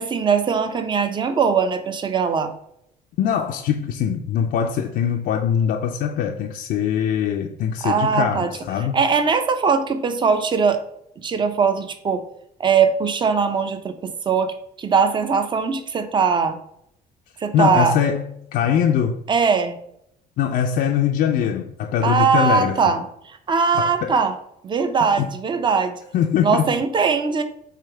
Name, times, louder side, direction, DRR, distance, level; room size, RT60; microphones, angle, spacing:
voice 1, 0.0-2.5 7.8-8.5 8.9-10.8 11.2-12.2 12.6-16.6 17.4-18.0 19.3-19.8 22.0-24.4 24.6-26.0 26.4-27.4, right 5 dB, 30° right, 0.5 m, -20 dB
voice 2, 3.2-9.0 17.5-19.2 20.4-22.8 23.7-24.2 25.2-25.3 26.1-26.6, left 8 dB, 60° left, 0.4 m, -22 dB
3.4 x 3.3 x 4.6 m
cardioid pair, 110°, 17 cm